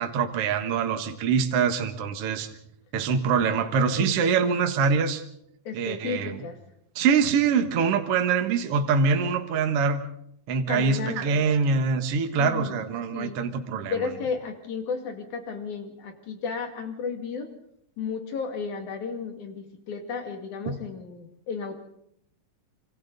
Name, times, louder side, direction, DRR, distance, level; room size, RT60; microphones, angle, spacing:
voice 1, 0.0-2.5 2.9-5.2 5.7-6.4 7.0-10.0 10.5-13.9 20.7-20.8, right 5 dB, 55° right, 6 dB, 2.0 m, -24 dB
voice 2, 5.7-6.6 10.7-11.4 12.4-12.9 13.1-13.4 13.8-17.5 18.0-21.7, left 5 dB, 60° left, 5 dB, 3.6 m, -33 dB
26.5 x 26.0 x 4.0 m, 0.75 s
omnidirectional pair, 4.0 m